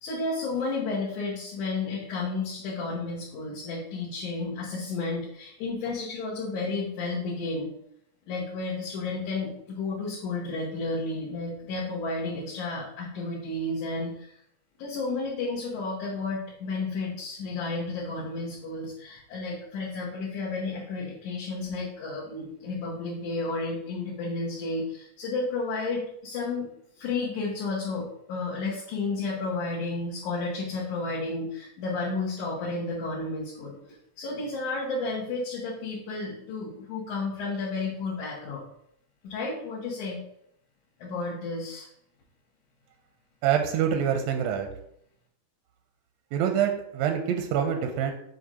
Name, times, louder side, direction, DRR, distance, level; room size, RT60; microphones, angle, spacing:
voice 1, 0.0-7.7 8.3-14.3 14.8-26.7 27.0-38.6 39.2-40.2 41.0-41.9, left 3 dB, 75° left, -7 dB, 2.5 m, -32 dB
voice 2, 43.4-44.7 46.3-48.1, right 8 dB, 80° right, 5 dB, 1.6 m, -25 dB
7.8 x 2.6 x 4.9 m, 0.73 s
omnidirectional pair, 3.5 m